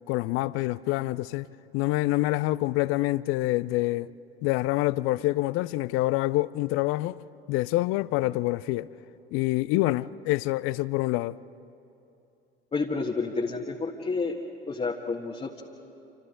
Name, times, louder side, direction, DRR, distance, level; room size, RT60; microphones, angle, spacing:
voice 1, 0.1-1.5 1.7-4.1 4.4-7.2 7.5-8.9 9.3-11.4, left 18 dB, 45° left, 0.6 m, -26 dB
voice 2, 12.7-14.4 14.7-15.6, left 4 dB, 20° left, 1.5 m, -30 dB
28.5 x 26.5 x 3.8 m
figure-of-eight pair, 65°, 29 cm